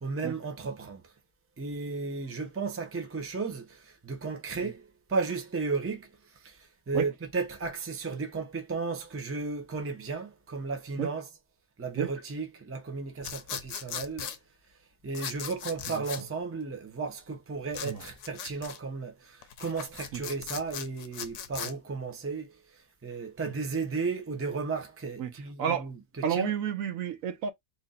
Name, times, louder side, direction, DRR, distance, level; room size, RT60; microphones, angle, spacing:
voice 1, 0.0-1.0 1.6-6.1 6.4-11.3 11.8-14.3 15.0-22.5 23.0-26.5, right 4 dB, 15° right, 0.5 m, -34 dB
sound 1, 13.2-14.4 15.1-16.2 17.7-18.8 19.4-21.7, left 9 dB, 70° left, 0.9 m, -39 dB
voice 2, 26.2-27.5, right 8 dB, 75° right, 1.0 m, -30 dB
2.9 x 2.6 x 3.9 m
omnidirectional pair, 1.5 m